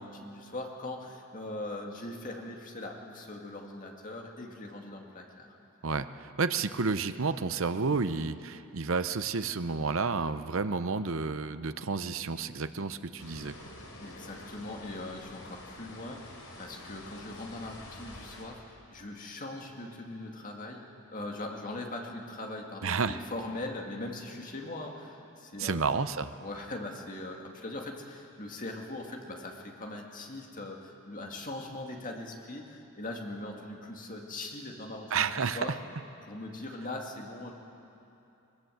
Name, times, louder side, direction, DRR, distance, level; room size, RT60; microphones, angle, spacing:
voice 1, 0.0-5.5 14.0-25.8 26.4-35.8 36.2-37.5, left 2 dB, 35° left, 1 dB, 2.2 m, -41 dB
voice 2, 5.8-13.5 22.8-23.2 25.6-26.3 35.1-35.6, right 4 dB, 60° right, 11 dB, 0.8 m, -31 dB
sound 1, 13.2-18.4, left 2 dB, 75° left, 3.5 m, -48 dB
21.0 x 20.5 x 7.9 m, 2.9 s
head